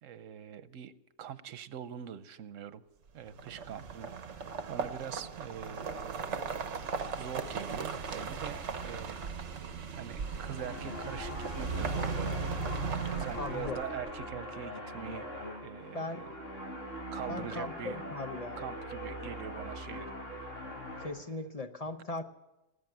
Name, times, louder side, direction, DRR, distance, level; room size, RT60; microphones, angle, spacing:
voice 1, 0.0-0.9 1.2-2.8 3.1-6.3 7.1-9.2 10.0-12.6 13.2-15.3 15.6-16.3 17.1-18.0 18.6-20.1, right 9 dB, 85° right, 14 dB, 1.1 m, -43 dB
sound 1, 3.3-14.1, right 5 dB, 65° right, 1.3 m, -37 dB
sound 2, 10.0-21.1, equal, 75° left, 3.8 m, -42 dB
voice 2, 13.4-13.8 15.9-16.3 17.3-18.6 21.0-22.2, left 2 dB, 35° left, 6 dB, 0.8 m, -38 dB
19.5 x 8.1 x 9.0 m, 0.98 s
omnidirectional pair, 1.3 m